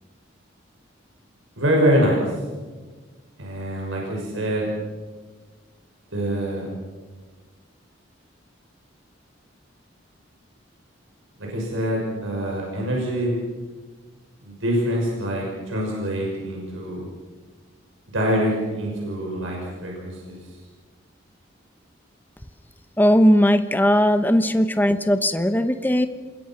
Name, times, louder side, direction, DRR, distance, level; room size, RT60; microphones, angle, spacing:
voice 1, 1.6-2.2 3.4-4.7 6.1-6.7 11.4-13.3 14.4-17.1 18.1-20.4, equal, 90° right, -1 dB, 6.1 m, -24 dB
voice 2, 23.0-26.1, equal, 10° left, 9 dB, 1.0 m, -18 dB
27.5 x 21.0 x 6.0 m, 1.3 s
head